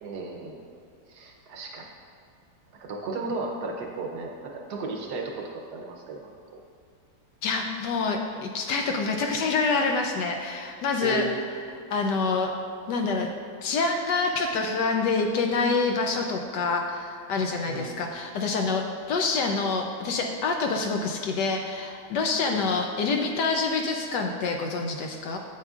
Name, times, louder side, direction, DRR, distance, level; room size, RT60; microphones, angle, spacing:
voice 1, 0.0-0.6 1.1-1.9 2.8-6.3 11.0-11.4 17.7-18.0 22.5-22.7, right 3 dB, 65° right, 1 dB, 1.2 m, -34 dB
voice 2, 7.4-11.3 11.9-12.5 12.9-13.3 13.6-25.4, left 4 dB, 70° left, 3 dB, 1.1 m, -26 dB
8.9 x 8.3 x 2.4 m, 2.1 s
omnidirectional pair, 2.1 m